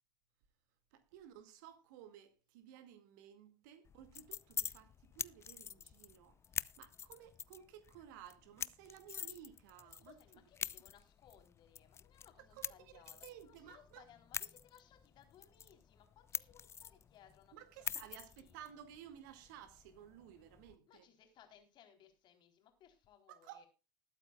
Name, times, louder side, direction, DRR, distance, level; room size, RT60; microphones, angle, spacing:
voice 1, 0.9-6.4 6.8-10.2 12.5-14.1 17.5-21.0 23.3-23.6, right 10 dB, 60° right, 2.1 m, -56 dB
sound 1, 3.9-20.8, left 7 dB, 25° left, 0.5 m, -47 dB
voice 2, 9.8-18.6 20.9-23.7, left 9 dB, 45° left, 3.7 m, -64 dB
20.5 x 9.0 x 2.3 m
figure-of-eight pair, 75°, 11 cm